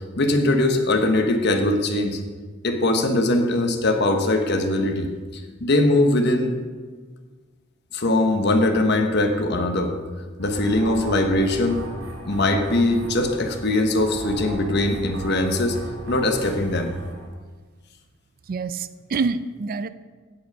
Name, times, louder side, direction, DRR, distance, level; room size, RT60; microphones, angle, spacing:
voice 1, 0.2-2.2 2.6-6.5 7.9-9.9 10.4-11.8 12.2-15.8 16.1-16.9, left 2 dB, 55° left, 5 dB, 1.1 m, -21 dB
sound 1, 10.4-17.3, right 1 dB, 80° right, 2.3 m, -38 dB
voice 2, 18.5-19.9, right 4 dB, 45° right, 14 dB, 0.4 m, -26 dB
8.9 x 7.8 x 5.3 m, 1.4 s
head